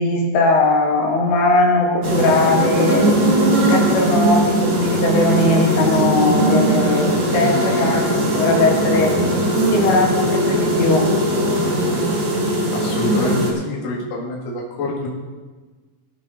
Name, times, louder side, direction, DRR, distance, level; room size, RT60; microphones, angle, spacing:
voice 1, 0.0-3.0 3.7-9.1 9.7-11.1, left 2 dB, 85° left, -2 dB, 4.4 m, -19 dB
sound 1, 2.0-13.5, right 1 dB, 45° right, 1.6 m, -19 dB
voice 2, 12.7-15.1, left 1 dB, 60° left, -3 dB, 3.2 m, -27 dB
18.5 x 7.4 x 4.1 m, 1.3 s
omnidirectional pair, 4.9 m